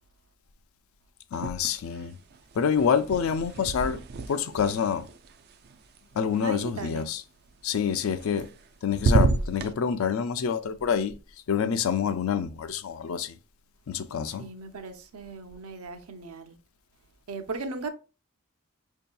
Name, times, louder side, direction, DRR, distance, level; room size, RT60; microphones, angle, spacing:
voice 1, 1.3-2.2 2.5-4.0 4.3-5.1 6.1-7.2 7.6-8.5 8.8-11.2 11.5-13.4 13.9-14.5, left 7 dB, 70° left, 0.4 m, -27 dB
sound 1, 1.3-2.0 2.3-6.4 8.0-8.7 8.9-9.7, right 4 dB, 50° right, 0.3 m, -29 dB
voice 2, 6.4-7.1 14.3-16.6 17.3-17.9, right 3 dB, 90° right, 0.6 m, -37 dB
5.3 x 2.7 x 2.2 m
head